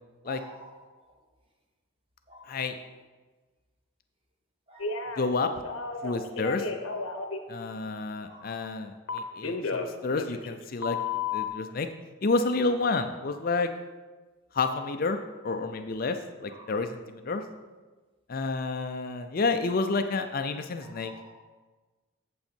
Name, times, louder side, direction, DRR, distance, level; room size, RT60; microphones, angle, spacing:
voice 1, 0.2-0.7 2.3-2.5 4.7-5.1 8.2-8.8 16.5-16.7 20.8-21.3, right 1 dB, 25° right, 0 dB, 1.4 m, -48 dB
voice 2, 2.5-2.8 5.2-5.5 6.0-6.7 7.5-11.0 11.3-11.9 12.2-13.7 14.5-15.2 15.4-17.4 18.3-21.1, left 3 dB, 45° left, 7 dB, 0.5 m, -29 dB
Telephone, 4.8-5.3 5.6-7.4 9.1-10.6 10.8-11.5, left 5 dB, 75° left, 0.8 m, -32 dB
8.4 x 7.8 x 4.4 m, 1.3 s
head